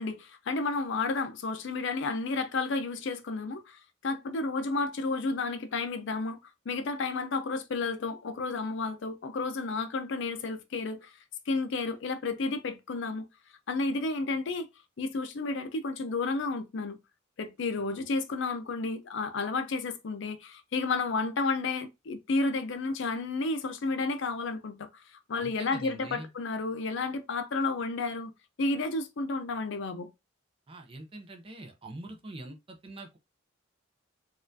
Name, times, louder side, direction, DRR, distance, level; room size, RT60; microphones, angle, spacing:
voice 1, 0.0-6.4 6.7-11.1 11.5-13.3 13.7-14.7 15.0-17.0 17.4-28.3 28.6-30.1, left 3 dB, 65° left, 0.5 m, -31 dB
voice 2, 25.4-26.3 30.7-33.2, right 2 dB, 25° right, 0.5 m, -44 dB
4.2 x 2.4 x 2.6 m
head